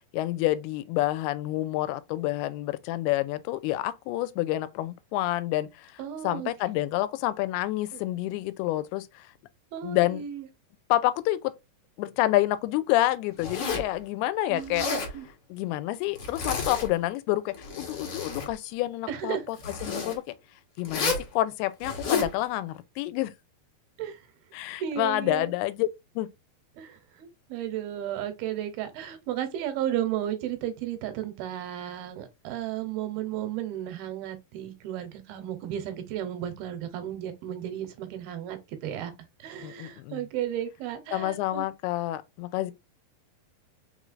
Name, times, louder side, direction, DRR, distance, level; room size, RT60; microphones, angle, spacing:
voice 1, 0.1-9.3 9.8-10.2 10.9-11.5 12.0-15.0 15.5-20.2 20.8-23.3 24.5-25.9 26.2-26.3 39.6-40.2 41.1-42.7, left 15 dB, 85° left, 2.5 m, -28 dB
voice 2, 6.0-6.5 7.9-8.0 9.7-10.5 14.5-15.3 19.1-19.4 24.0-24.2 24.8-25.5 26.8-39.1 39.4-41.7, right 11 dB, 80° right, 2.6 m, -34 dB
Zipper (clothing), 13.4-13.9 14.6-15.1 16.2-16.9 17.5-18.5 19.6-20.2 20.9-21.3 21.8-22.3, left 4 dB, 60° left, 1.4 m, -31 dB
5.7 x 3.1 x 2.5 m
omnidirectional pair, 4.5 m